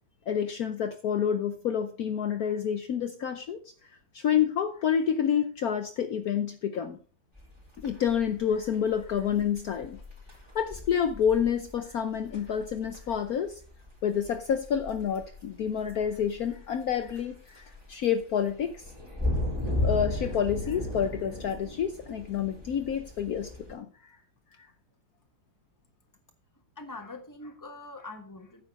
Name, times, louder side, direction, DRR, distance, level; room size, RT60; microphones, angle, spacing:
voice 1, 0.3-3.6 4.1-7.0 7.8-10.0 10.5-13.6 14.0-18.8 19.8-24.2 24.6-24.7, left 8 dB, 60° left, 8 dB, 1.1 m, -28 dB
sound 1, 7.3-23.7, left 1 dB, 15° right, 3.5 m, -36 dB
voice 2, 26.8-28.6, left 2 dB, 10° left, 4 dB, 1.3 m, -43 dB
9.7 x 7.2 x 5.3 m, 0.41 s
omnidirectional pair, 2.0 m